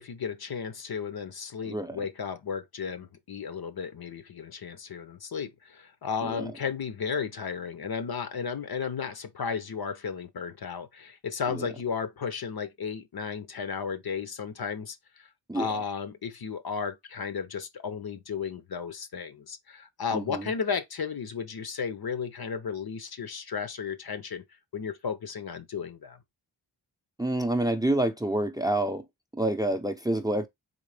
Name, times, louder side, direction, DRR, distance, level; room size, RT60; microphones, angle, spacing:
voice 1, 0.0-15.3 15.5-24.4 24.7-26.2, left 6 dB, 50° left, 0.7 m, -34 dB
voice 2, 1.6-2.0 6.2-6.5 11.5-11.7 15.5-15.7 20.1-20.5 27.2-29.1 29.3-30.5, right 1 dB, 10° right, 0.6 m, -28 dB
3.8 x 3.1 x 3.2 m
cardioid pair, 55°, 46 cm